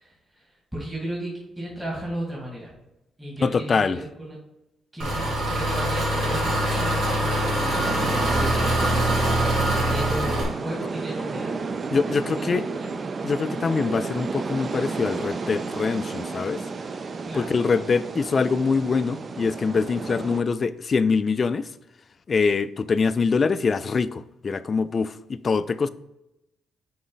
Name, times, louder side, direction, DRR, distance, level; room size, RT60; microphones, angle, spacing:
voice 1, 0.0-2.7 3.2-4.4 4.9-8.8 9.7-11.6 12.4-12.9 17.3-17.5, right 1 dB, 15° right, 2.0 m, -35 dB
voice 2, 3.4-4.0 11.9-12.6 13.2-16.6 17.3-21.7 22.3-25.9, left 5 dB, 40° left, 0.3 m, -24 dB
Engine, 5.0-10.4, right 1 dB, 70° right, 2.2 m, -23 dB
sound 1, 7.7-20.4, right 4 dB, 40° right, 0.4 m, -32 dB
6.2 x 4.2 x 3.9 m
cardioid pair, 90°, 0 cm